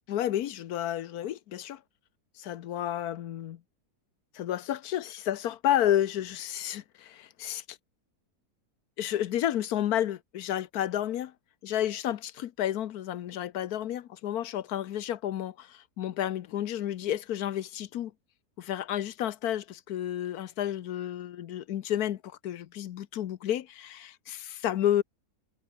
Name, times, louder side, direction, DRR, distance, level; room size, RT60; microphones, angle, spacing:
voice 1, 0.1-1.8 2.4-3.6 4.3-7.8 9.0-11.3 11.6-18.1 18.6-25.0, left 11 dB, 80° left, 1.3 m, -31 dB
omnidirectional pair, 1.6 m